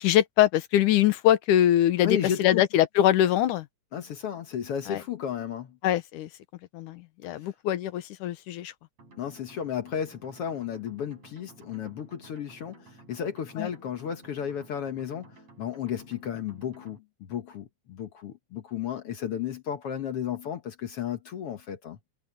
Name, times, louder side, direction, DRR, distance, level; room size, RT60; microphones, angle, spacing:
voice 1, 0.0-3.6 4.9-5.0 5.8-6.3 6.7-8.7 13.6-13.7, left 12 dB, 85° left, 2.6 m, -23 dB
voice 2, 2.0-2.6 3.9-5.8 9.2-22.0, left 9 dB, 60° left, 1.8 m, -33 dB
sound 1, 9.0-17.0, right 2 dB, 55° right, 6.8 m, -54 dB
omnidirectional pair, 3.5 m